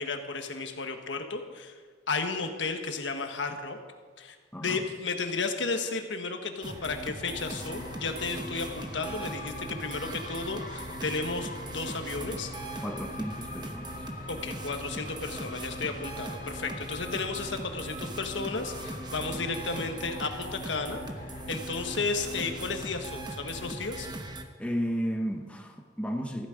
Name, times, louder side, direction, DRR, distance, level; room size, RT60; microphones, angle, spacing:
voice 1, 0.0-1.7 2.1-3.8 4.2-4.4 4.6-12.8 14.3-21.0 21.5-24.1, left 4 dB, 75° left, 6 dB, 1.4 m, -33 dB
voice 2, 4.5-4.8 12.8-14.1 24.6-26.5, equal, 5° left, 2 dB, 1.0 m, -33 dB
sound 1, 6.6-24.4, right 1 dB, 25° right, 1.0 m, -39 dB
sound 2, 7.2-23.0, left 3 dB, 45° left, 1.1 m, -45 dB
14.5 x 12.5 x 5.1 m, 1.6 s
head